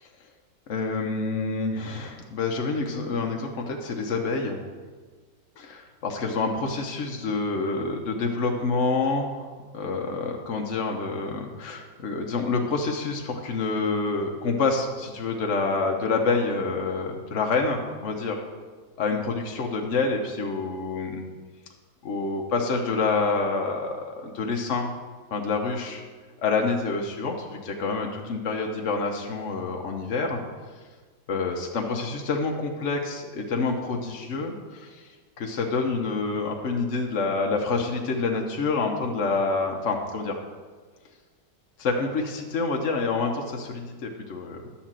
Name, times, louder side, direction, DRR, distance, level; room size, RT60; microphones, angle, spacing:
voice 1, 0.7-4.6 5.6-18.4 19.0-21.2 22.0-24.9 25.3-26.0 26.4-30.4 31.3-35.1 35.4-40.4 41.8-44.6, left 4 dB, 55° left, 1 dB, 0.9 m, -27 dB
11.0 x 4.3 x 7.4 m, 1.4 s
omnidirectional pair, 2.0 m